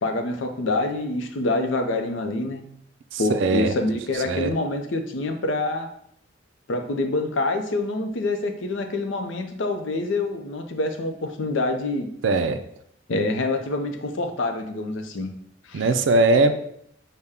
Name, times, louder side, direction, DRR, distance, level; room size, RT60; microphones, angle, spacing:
voice 1, 0.0-2.6 3.2-5.9 6.7-12.1 13.1-15.3 15.6-15.9, left 2 dB, 85° left, 5 dB, 0.5 m, -26 dB
voice 2, 3.1-3.7 4.3-4.5 12.2-12.6 15.7-16.5, right 3 dB, 80° right, 9 dB, 0.4 m, -20 dB
5.5 x 2.1 x 3.5 m, 0.70 s
head